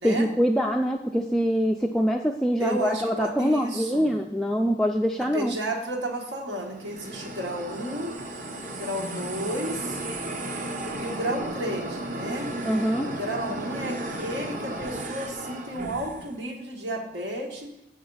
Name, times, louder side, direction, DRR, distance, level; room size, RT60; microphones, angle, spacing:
voice 1, 0.0-5.5 12.6-13.1, equal, ahead, 1 dB, 0.3 m, -24 dB
voice 2, 2.6-4.1 5.2-8.1 8.7-10.0 11.0-12.5 13.0-17.7, right 1 dB, 80° right, -1 dB, 1.6 m, -32 dB
sound 1, 6.6-16.3, right 1 dB, 45° right, 0.9 m, -34 dB
7.4 x 6.0 x 5.5 m, 0.84 s
head